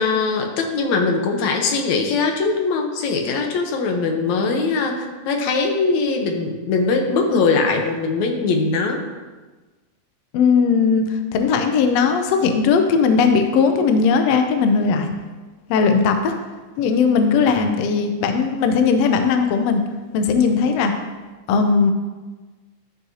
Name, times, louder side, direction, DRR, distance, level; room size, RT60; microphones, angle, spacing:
voice 1, 0.0-9.0, left 4 dB, 65° left, 3 dB, 2.1 m, -21 dB
voice 2, 10.3-15.1 15.7-16.3 16.8-19.8 20.1-20.9 21.5-21.9, left 5 dB, 85° left, 6 dB, 1.4 m, -18 dB
13.0 x 6.5 x 2.8 m, 1.3 s
omnidirectional pair, 3.8 m